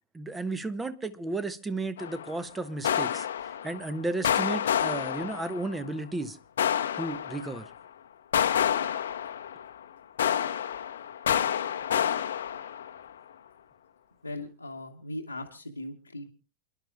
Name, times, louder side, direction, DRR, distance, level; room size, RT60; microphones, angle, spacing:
voice 1, 0.1-6.4 7.0-7.7, right 2 dB, 10° right, 0.9 m, -34 dB
sound 1, 2.0-2.4 2.8-3.9 4.2-5.8 6.6-7.7 8.3-9.8 10.2-13.1, left 9 dB, 65° left, 0.8 m, -29 dB
voice 2, 14.2-16.3, left 1 dB, 85° left, 1.1 m, -39 dB
29.0 x 11.5 x 2.4 m
figure-of-eight pair, 90°, 0 cm